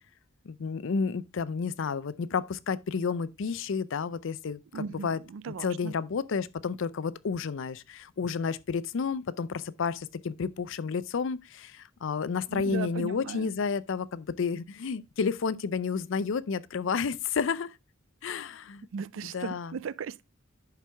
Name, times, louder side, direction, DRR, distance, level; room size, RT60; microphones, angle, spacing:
voice 1, 0.5-5.2 5.6-17.7 18.2-18.9 19.2-19.8, left 5 dB, 65° left, 0.5 m, -31 dB
voice 2, 4.7-6.0 12.5-13.5 18.9-20.2, right 6 dB, 70° right, 0.4 m, -37 dB
10.5 x 4.5 x 3.3 m
head